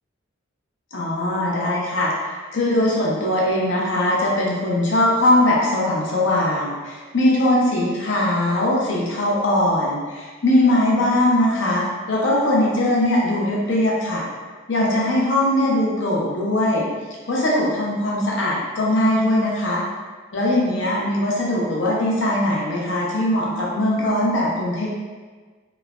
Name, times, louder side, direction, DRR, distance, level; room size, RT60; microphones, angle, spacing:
voice 1, 0.9-14.2 14.7-16.9 17.3-19.8 20.3-24.9, left 1 dB, 60° left, -4 dB, 0.6 m, -20 dB
3.0 x 2.1 x 2.4 m, 1.4 s
head